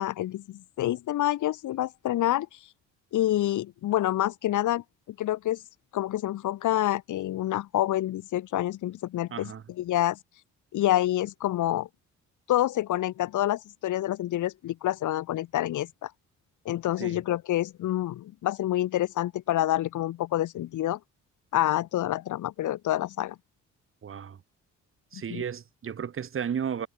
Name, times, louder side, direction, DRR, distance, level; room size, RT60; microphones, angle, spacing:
voice 1, 0.0-2.5 3.1-5.6 5.9-9.5 9.8-10.2 10.7-11.9 12.5-16.1 16.6-21.0 21.5-23.4 25.1-25.4, left 13 dB, 80° left, 2.7 m, -27 dB
voice 2, 9.3-9.6 17.0-17.2 24.0-24.4 25.1-26.9, right 7 dB, 45° right, 1.7 m, -33 dB
cardioid pair, 90°, 30 cm